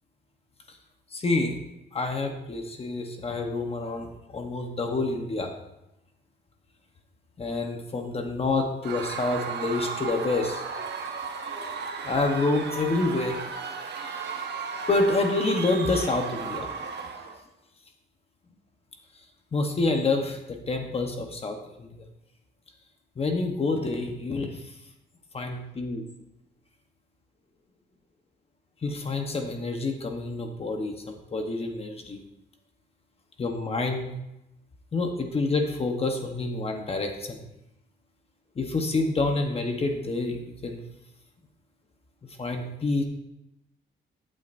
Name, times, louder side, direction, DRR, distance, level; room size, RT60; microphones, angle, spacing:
voice 1, 1.1-1.6 1.9-5.5 7.4-10.6 12.0-13.4 14.9-16.7 19.5-22.0 23.2-24.7 25.3-26.0 28.8-32.2 33.4-34.1 34.9-37.4 38.6-40.8 42.4-43.0, left 3 dB, 30° left, 4 dB, 1.0 m, -28 dB
Screaming / Cheering / Crowd, 8.8-17.4, right 5 dB, 60° right, 1.2 m, -35 dB
14.5 x 8.9 x 2.6 m, 0.88 s
wide cardioid pair, 160°, 19 cm